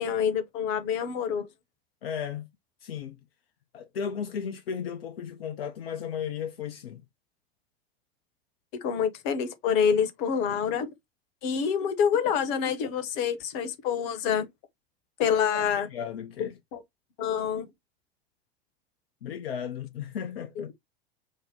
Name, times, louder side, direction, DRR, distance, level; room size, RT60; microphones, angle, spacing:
voice 1, 0.0-1.5 8.8-10.9 11.4-14.4 15.2-15.9 16.4-16.8 17.2-17.7 20.6-20.7, left 7 dB, 50° left, 1.1 m, -27 dB
voice 2, 2.0-2.5 2.8-3.2 3.7-7.0 15.5-16.6 19.2-20.7, left 7 dB, 70° left, 0.7 m, -35 dB
5.5 x 2.1 x 3.6 m
figure-of-eight pair, 85°, 31 cm